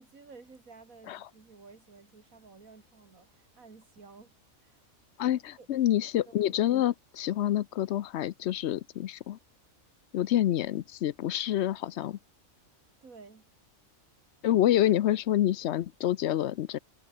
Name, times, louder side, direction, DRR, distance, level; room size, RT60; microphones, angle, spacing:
voice 1, 0.0-5.8 6.3-6.5 13.0-13.5, right 4 dB, 80° right, 3.2 m, -54 dB
voice 2, 5.2-9.4 10.1-12.2 14.4-16.8, left 12 dB, 65° left, 0.8 m, -27 dB
omnidirectional pair, 1.4 m